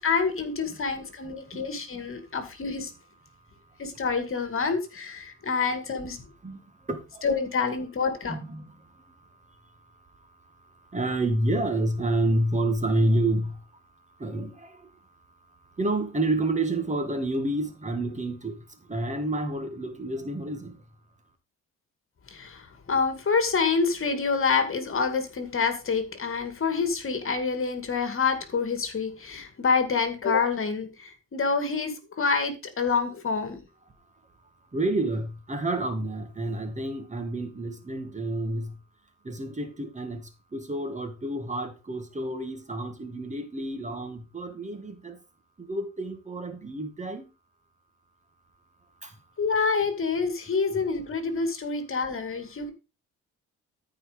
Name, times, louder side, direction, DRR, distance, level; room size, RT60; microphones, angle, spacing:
voice 1, 0.0-2.9 3.8-6.2 7.2-8.4 22.3-33.6 49.4-52.7, left 5 dB, 45° left, 2.3 m, -27 dB
voice 2, 1.4-1.7 6.4-7.3 8.3-9.7 10.2-13.7 14.2-14.9 15.8-20.8 34.7-38.8 39.2-45.2 45.6-47.3 49.0-49.2, right 1 dB, 25° right, 2.2 m, -29 dB
13.5 x 4.9 x 5.1 m
cardioid pair, 90°, 30 cm